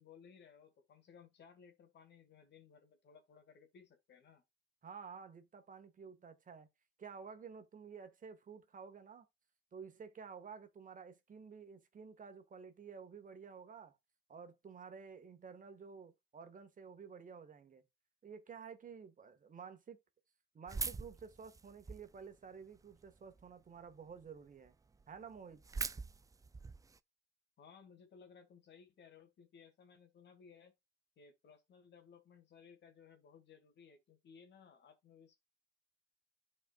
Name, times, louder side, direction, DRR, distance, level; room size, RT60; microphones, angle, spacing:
voice 1, 0.0-4.4 27.6-30.7 31.2-35.4, left 6 dB, 60° left, 1.7 m, -60 dB
voice 2, 4.8-6.7 7.0-9.2 9.7-14.0 14.3-17.8 18.2-20.0 20.5-24.7 25.1-25.6, right 6 dB, 40° right, 1.3 m, -52 dB
sound 1, 20.7-22.2 22.7-23.4 23.9-24.0 24.2-24.3 24.7-24.8 24.9-27.0, right 4 dB, 15° right, 0.3 m, -42 dB
12.0 x 4.3 x 2.2 m
cardioid pair, 90°, 20 cm